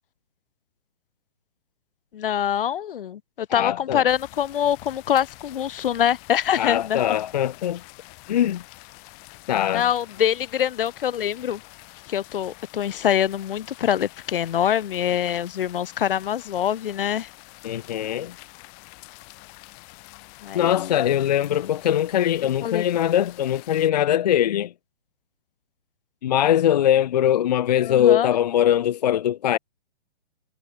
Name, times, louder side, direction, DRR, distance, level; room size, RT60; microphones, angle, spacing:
voice 1, 2.1-7.1 9.7-11.6 12.1-17.3 20.4-21.0 21.5-21.7 22.6-22.8 27.8-28.3, left 10 dB, 65° left, 0.9 m, -24 dB
voice 2, 3.5-4.0 6.6-7.8 8.3-8.6 9.5-9.9 17.6-18.3 20.5-24.7 26.2-29.6, left 11 dB, 45° left, 0.6 m, -21 dB
sound 1, 4.1-23.9, left 40 dB or more, 25° left, 6.4 m, -47 dB
hypercardioid pair, 165°, 30 cm